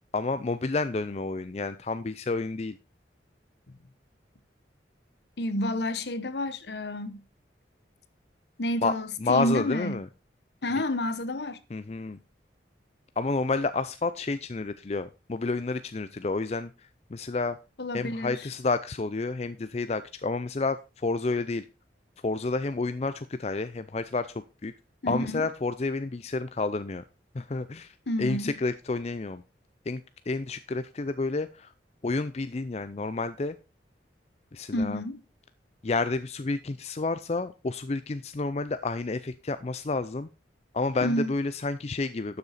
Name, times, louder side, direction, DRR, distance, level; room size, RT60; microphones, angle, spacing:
voice 1, 0.1-2.8 8.8-8.9 9.2-10.1 11.7-12.2 13.2-17.6 17.9-21.7 22.2-24.3 24.6-24.7 25.1-27.0 27.3-29.4 29.9-31.7 32.0-33.6 34.5-35.0 35.8-40.3 40.7-42.4, left 3 dB, 35° left, 0.5 m, -30 dB
voice 2, 5.4-7.2 8.6-10.0 10.6-11.6 17.8-18.4 25.0-25.5 28.1-28.6 34.7-35.2 41.0-41.3, left 1 dB, 65° left, 1.0 m, -30 dB
12.0 x 6.9 x 4.1 m
head